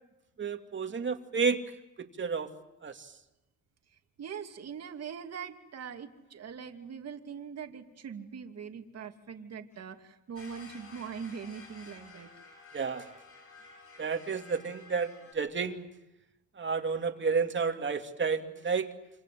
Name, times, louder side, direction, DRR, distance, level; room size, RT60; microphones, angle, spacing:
voice 1, 0.4-1.6 2.2-2.5 2.8-3.1 12.7-13.2 14.0-15.9 16.6-18.9, right 5 dB, 40° right, 5 dB, 2.7 m, -31 dB
voice 2, 4.2-12.3, right 7 dB, 55° right, 5 dB, 2.7 m, -42 dB
sound 1, 10.3-15.3, left 3 dB, 50° left, 7.7 m, -52 dB
27.5 x 26.5 x 7.7 m, 0.96 s
cardioid pair, 90°, 30 cm